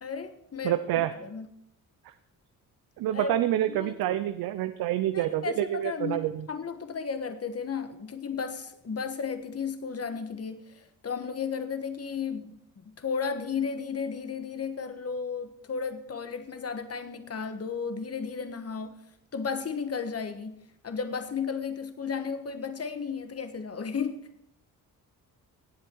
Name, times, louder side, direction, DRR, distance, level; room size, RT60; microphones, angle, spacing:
voice 1, 0.0-1.5 3.1-3.4 3.7-4.2 5.1-19.0 19.3-24.2, left 6 dB, 40° left, 9 dB, 1.5 m, -34 dB
voice 2, 0.6-1.1 3.0-6.4, right 13 dB, 85° right, 11 dB, 0.6 m, -27 dB
18.0 x 7.8 x 4.6 m, 0.78 s
cardioid pair, 65°, 36 cm